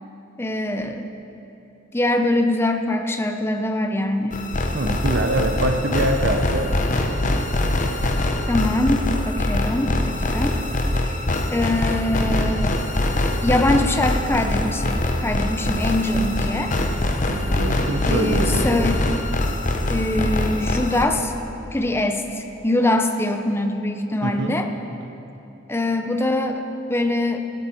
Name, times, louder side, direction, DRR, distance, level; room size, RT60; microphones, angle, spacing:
voice 1, 0.4-1.1 1.9-4.4 8.5-10.6 11.1-11.2 11.5-12.7 13.4-16.7 18.0-19.0 19.9-21.3 21.7-24.7 25.7-26.6 26.9-27.4, left 1 dB, 10° left, 6 dB, 0.6 m, -23 dB
sound 1, 4.3-21.1, left 1 dB, 40° left, 0.8 m, -23 dB
voice 2, 4.7-6.7 17.3-18.9 24.2-24.5, right 2 dB, 60° right, 5 dB, 0.8 m, -24 dB
16.5 x 11.5 x 4.5 m, 3.0 s
head